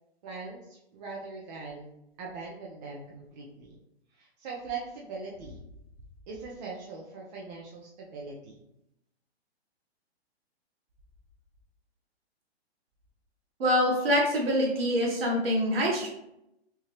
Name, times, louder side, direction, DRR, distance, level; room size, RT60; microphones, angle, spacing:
voice 1, 0.2-1.9 2.2-3.8 4.2-5.6 6.3-8.5, right 4 dB, 40° right, -3 dB, 0.6 m, -41 dB
voice 2, 13.6-16.1, equal, 60° right, -2 dB, 1.2 m, -25 dB
2.9 x 2.3 x 3.2 m, 0.83 s
hypercardioid pair, 140°, 32 cm